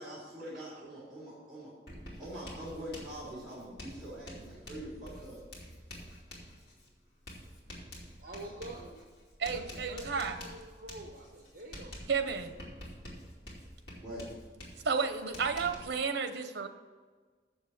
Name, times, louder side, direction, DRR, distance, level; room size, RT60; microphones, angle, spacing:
voice 1, 0.0-1.7 2.2-5.4 8.4-8.9 13.9-14.3, right 1 dB, ahead, -10 dB, 3.3 m, -44 dB
Writing, 1.9-16.0, equal, 65° left, 2.8 m, -48 dB
voice 2, 8.2-8.8 9.5-12.0, right 1 dB, 50° right, 1 dB, 0.9 m, -46 dB
voice 3, 9.4-10.4 12.1-12.5 14.8-16.7, right 5 dB, 80° right, 9 dB, 0.7 m, -32 dB
7.3 x 7.0 x 7.5 m, 1.5 s
head